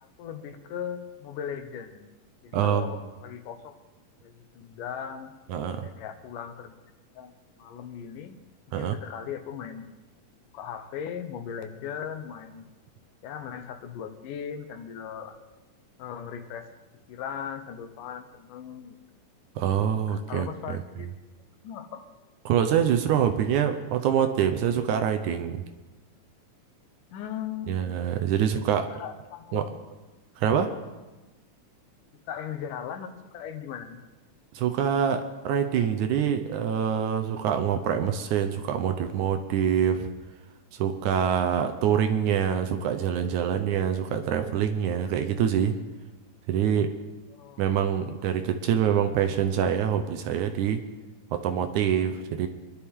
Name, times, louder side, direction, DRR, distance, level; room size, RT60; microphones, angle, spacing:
voice 1, 0.0-2.1 2.4-3.7 4.2-5.3 5.8-6.8 7.2-7.3 7.6-8.4 8.8-9.9 10.5-12.7 13.2-15.4 16.0-16.7 17.1-19.0 20.1-21.1 21.6-22.1 27.1-27.9 28.9-29.8 32.3-34.0 47.3-47.7, left 8 dB, 75° left, 8 dB, 2.4 m, -38 dB
voice 2, 2.5-2.9 5.5-5.9 8.7-9.0 19.6-20.8 22.5-25.6 27.7-28.9 29.5-29.6 30.4-30.7 34.6-40.1 40.8-45.8 46.5-46.9 47.6-50.8 51.3-52.5, right 8 dB, 70° right, 7 dB, 2.1 m, -25 dB
24.0 x 11.5 x 3.7 m, 1.1 s
omnidirectional pair, 3.9 m